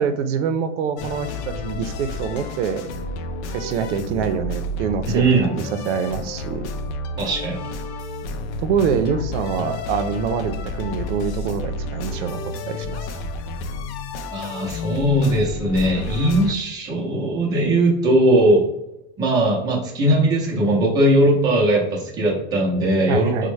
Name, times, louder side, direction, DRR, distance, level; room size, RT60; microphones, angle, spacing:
voice 1, 0.0-2.9 3.5-6.7 8.6-12.4 12.7-13.2 23.1-23.5, right 6 dB, 85° right, 9 dB, 0.5 m, -25 dB
sound 1, 1.0-16.6, left 2 dB, 75° left, 0.5 m, -31 dB
voice 2, 5.1-5.5 7.2-7.7 14.3-18.6 19.2-23.5, right 1 dB, 10° right, -3 dB, 0.5 m, -19 dB
4.1 x 2.1 x 3.1 m, 0.85 s
supercardioid pair, 165°, 34 cm